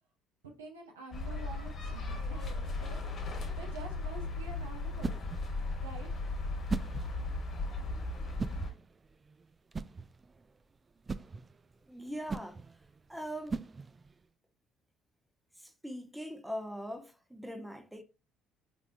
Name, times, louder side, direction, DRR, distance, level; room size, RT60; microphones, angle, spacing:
voice 1, 0.4-5.2 5.8-6.1, right 3 dB, 85° right, 0.9 m, -48 dB
sound 1, 1.1-8.7, left 2 dB, 45° left, 1.2 m, -36 dB
sound 2, 3.7-14.3, right 4 dB, 30° right, 0.3 m, -42 dB
voice 2, 11.9-12.6 13.1-13.6 15.6-18.0, equal, 5° right, 0.7 m, -41 dB
4.6 x 3.6 x 2.5 m
hypercardioid pair, 55°, 0 cm